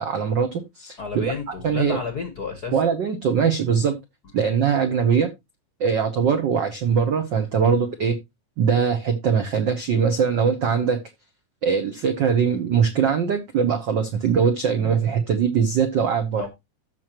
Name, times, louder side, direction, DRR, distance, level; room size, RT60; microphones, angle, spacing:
voice 1, 0.0-1.3 1.6-2.0 2.7-4.0 4.3-5.3 5.8-8.2 8.6-11.0 11.6-16.5, right 6 dB, 85° right, 1.0 m, -21 dB
voice 2, 1.0-2.8 4.4-4.5 16.4-16.5, left 5 dB, 60° left, 1.0 m, -31 dB
14.0 x 6.2 x 3.0 m
omnidirectional pair, 3.4 m